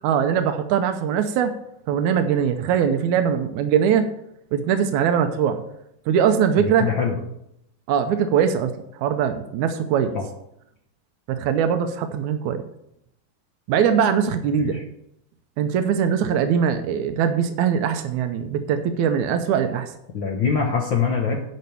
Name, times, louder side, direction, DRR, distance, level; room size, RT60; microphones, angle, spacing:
voice 1, 0.0-1.5 1.9-4.1 4.5-5.6 6.1-6.9 7.9-8.7 9.0-10.1 11.3-12.6 13.7-14.8 15.6-19.9, right 8 dB, 85° right, 8 dB, 2.1 m, -21 dB
voice 2, 6.6-7.2 10.1-10.2 14.6-14.8 20.1-21.4, left 6 dB, 55° left, 1 dB, 1.4 m, -23 dB
11.0 x 5.3 x 6.9 m, 0.77 s
omnidirectional pair, 3.3 m